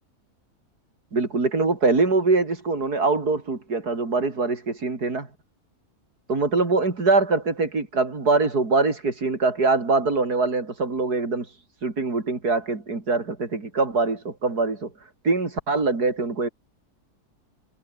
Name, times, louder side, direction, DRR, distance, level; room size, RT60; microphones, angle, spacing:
voice 1, 1.1-5.3 6.3-11.5 11.8-14.9 15.2-16.5, right 3 dB, 85° right, 4.4 m, -23 dB
omnidirectional pair, 1.6 m